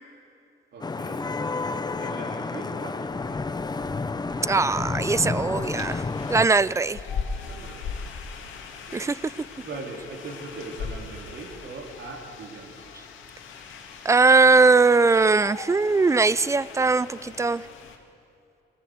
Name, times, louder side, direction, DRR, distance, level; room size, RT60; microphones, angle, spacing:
voice 1, 0.7-1.2 1.9-3.4 7.4-8.0 9.0-9.1 9.6-12.9, right 3 dB, 65° right, 1 dB, 3.7 m, -40 dB
Vehicle horn car horn honking / Traffic noise roadway noise, 0.8-6.5, left 3 dB, 20° left, 0.8 m, -30 dB
voice 2, 4.4-6.0 6.3-7.0 8.9-9.3 14.0-17.6, right 3 dB, 15° right, 19 dB, 0.4 m, -20 dB
sound 1, 5.6-18.0, left 5 dB, 80° left, 2.4 m, -39 dB
21.5 x 18.5 x 7.9 m, 2.8 s
cardioid pair, 90°, 20 cm